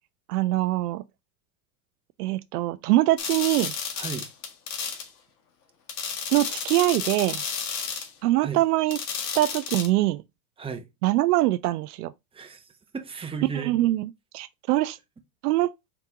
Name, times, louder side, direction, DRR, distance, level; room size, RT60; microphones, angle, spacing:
voice 1, 0.3-1.0 2.2-3.7 6.3-7.4 8.2-9.0 9.4-10.2 11.0-12.1 13.5-15.0 15.4-15.7, right 17 dB, 70° right, 0.6 m, -23 dB
sound 1, 3.2-5.1 5.9-8.1 8.9-9.9, left 6 dB, 70° left, 1.6 m, -32 dB
voice 2, 4.0-4.3 8.4-8.6 10.6-10.9 12.3-13.8, right 6 dB, 10° right, 0.8 m, -35 dB
4.8 x 3.6 x 2.8 m
hypercardioid pair, 105°, 49 cm